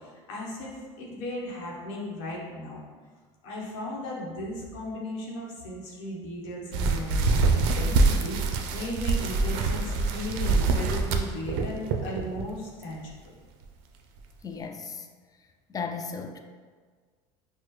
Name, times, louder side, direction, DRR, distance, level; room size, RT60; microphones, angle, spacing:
voice 1, 0.0-2.8 3.4-13.1, left 1 dB, 85° left, -3 dB, 1.0 m, -36 dB
sound 1, 6.7-12.4 12.8-13.1 13.6-13.7 14.2-14.3, right 3 dB, 70° right, 0.4 m, -25 dB
voice 2, 14.4-15.1 15.7-16.4, left 5 dB, 25° left, 5 dB, 0.3 m, -35 dB
4.7 x 2.1 x 3.1 m, 1.5 s
supercardioid pair, 100°, 15 cm